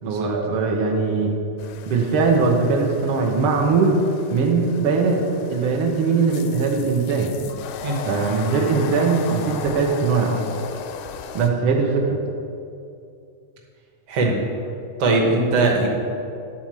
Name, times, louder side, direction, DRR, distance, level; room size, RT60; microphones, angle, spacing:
voice 1, 0.1-1.4 1.9-4.0 4.3-5.2 5.5-7.3 8.1-10.6 11.3-12.2, right 4 dB, 80° right, 0 dB, 1.2 m, -20 dB
sound 1, 1.6-11.5, left 7 dB, 80° left, 1.7 m, -37 dB
voice 2, 7.8-8.3 14.1-14.4 15.0-15.9, right 2 dB, 60° right, -1 dB, 1.9 m, -21 dB
11.0 x 4.3 x 7.5 m, 2.6 s
omnidirectional pair, 3.7 m